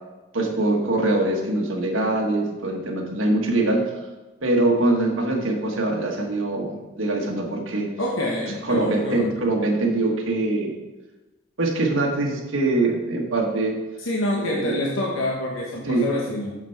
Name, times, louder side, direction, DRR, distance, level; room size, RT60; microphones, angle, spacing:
voice 1, 0.3-3.9 4.4-7.9 8.6-10.7 11.6-13.7 14.3-14.8 15.8-16.1, right 2 dB, 85° right, 1 dB, 1.3 m, -23 dB
voice 2, 8.0-9.4 14.0-16.5, left 1 dB, 85° left, -2 dB, 1.0 m, -26 dB
6.7 x 5.9 x 4.5 m, 1.1 s
head